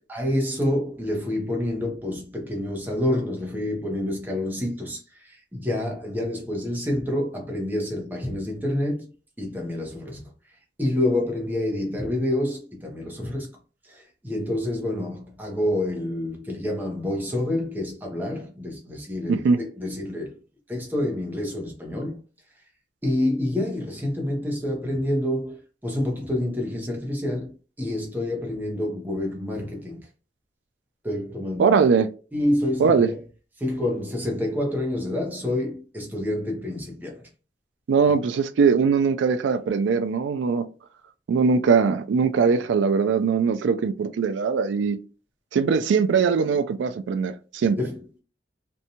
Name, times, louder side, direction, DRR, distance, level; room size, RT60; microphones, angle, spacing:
voice 1, 0.1-9.1 9.4-10.3 10.8-13.5 13.9-20.4 20.7-22.2 23.0-30.0 31.0-31.8 32.3-33.2 33.6-37.2 47.8-48.2, left 1 dB, 10° right, 0.6 m, -28 dB
voice 2, 19.3-19.6 31.6-32.1 32.8-33.1 37.9-40.7 41.3-45.0 45.5-47.8, right 5 dB, 85° right, 0.3 m, -21 dB
2.6 x 2.2 x 2.8 m
head